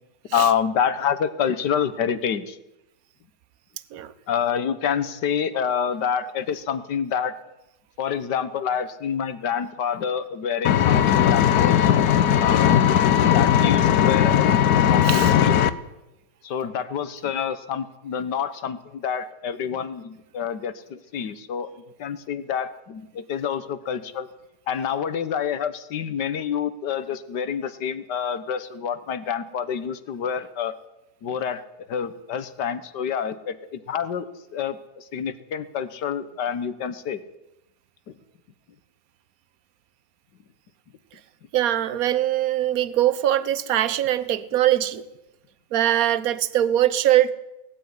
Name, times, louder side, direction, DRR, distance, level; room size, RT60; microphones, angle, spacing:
voice 1, 0.3-2.6 4.3-7.4 8.0-11.9 12.4-12.8 13.3-14.5 14.9-15.7 16.4-21.7 22.0-24.3 24.7-30.8 31.2-31.6 31.9-37.2, left 7 dB, 85° left, 13 dB, 1.8 m, -27 dB
Engine, 10.6-15.7, left 10 dB, 70° left, 1.4 m, -18 dB
voice 2, 41.5-45.1 45.7-47.3, right 12 dB, 60° right, 16 dB, 1.3 m, -22 dB
19.0 x 14.0 x 9.6 m, 0.92 s
omnidirectional pair, 1.8 m